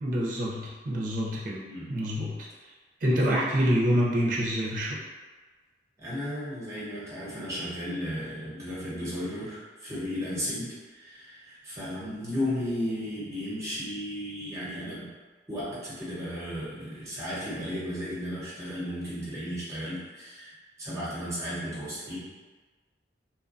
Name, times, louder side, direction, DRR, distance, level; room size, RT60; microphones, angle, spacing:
voice 1, 0.0-1.6 1.9-2.5 3.0-5.0, equal, 45° right, -4 dB, 0.4 m, -26 dB
voice 2, 6.0-15.1 15.5-20.5 20.8-22.2, equal, 15° right, -9 dB, 0.8 m, -34 dB
2.9 x 2.1 x 2.5 m, 1.4 s
head